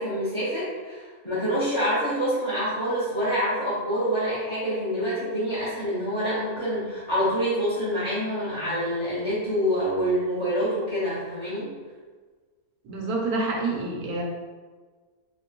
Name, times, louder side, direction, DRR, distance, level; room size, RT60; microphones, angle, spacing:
voice 1, 0.0-11.7, equal, 20° left, -12 dB, 1.1 m, -26 dB
voice 2, 12.8-14.2, right 3 dB, 75° right, -2 dB, 1.4 m, -27 dB
4.3 x 3.5 x 3.0 m, 1.4 s
omnidirectional pair, 1.6 m